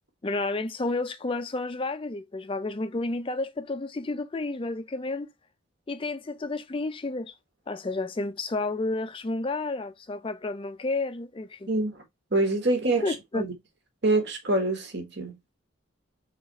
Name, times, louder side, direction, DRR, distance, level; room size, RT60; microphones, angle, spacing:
voice 1, 0.2-5.3 5.9-7.3 7.7-11.7 13.0-13.4, left 2 dB, 25° left, 0.4 m, -31 dB
voice 2, 11.7-12.0 12.3-13.5 14.0-15.4, right 2 dB, 55° right, 1.5 m, -26 dB
4.0 x 3.4 x 4.0 m
head